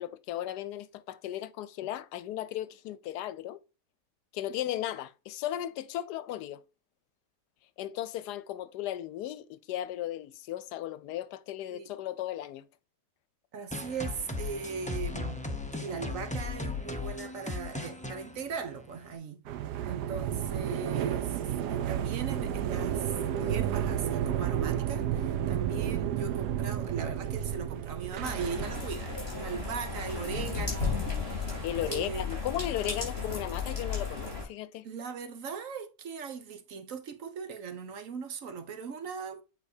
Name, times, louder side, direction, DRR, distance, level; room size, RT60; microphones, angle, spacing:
voice 1, 0.0-3.6 4.3-6.6 7.8-12.6 31.6-34.9, left 12 dB, 85° left, 1.2 m, -36 dB
voice 2, 13.5-15.5 15.7-19.4 19.8-31.5 31.9-32.4 34.8-39.4, right 6 dB, 60° right, 1.1 m, -39 dB
sound 1, 13.7-19.2, left 3 dB, 10° left, 0.3 m, -37 dB
sound 2, 19.5-32.2, right 10 dB, 90° right, 1.3 m, -32 dB
sound 3, 28.2-34.4, left 4 dB, 40° left, 4.1 m, -34 dB
8.3 x 4.6 x 2.7 m
omnidirectional pair, 1.7 m